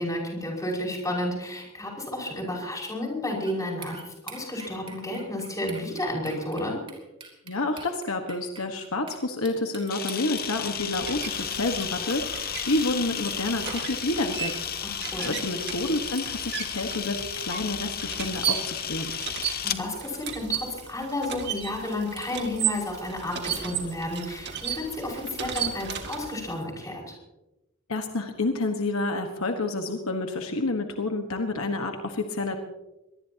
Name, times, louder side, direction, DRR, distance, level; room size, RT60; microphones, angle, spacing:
voice 1, 0.0-6.8 14.8-15.3 19.4-27.0, left 1 dB, 15° left, -2 dB, 5.6 m, -32 dB
sound 1, 3.4-3.6 3.8-9.2 9.4-12.5 13.6-13.9 14.8-14.9 15.4-15.5 15.7-15.8 16.1-17.4 17.7-18.4 18.7-18.8 19.1-21.0 21.3-21.4 22.2-22.3, right 4 dB, 25° right, 3.8 m, -44 dB
voice 2, 7.5-14.6 15.2-19.1 27.9-32.6, left 2 dB, 70° left, 4 dB, 1.5 m, -29 dB
Camera, 9.9-19.8, left 9 dB, 45° left, 1.1 m, -33 dB
sound 2, 10.4-26.6, right 8 dB, 50° right, 2.3 m, -35 dB
24.5 x 19.0 x 2.9 m, 1.0 s
head